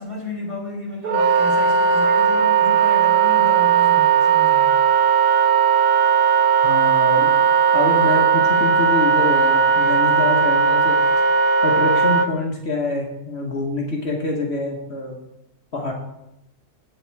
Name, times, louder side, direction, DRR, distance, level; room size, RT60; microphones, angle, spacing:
voice 1, 0.0-4.9, left 1 dB, 20° right, -4 dB, 3.3 m, -33 dB
Wind instrument woodwind instrument, 1.0-12.3, right 6 dB, 50° right, 0.8 m, -17 dB
voice 2, 6.6-7.3 7.7-11.0 11.6-15.2 15.7-15.9, left 2 dB, 50° left, 0 dB, 1.4 m, -25 dB
8.4 x 7.1 x 4.5 m, 0.86 s
omnidirectional pair, 1.4 m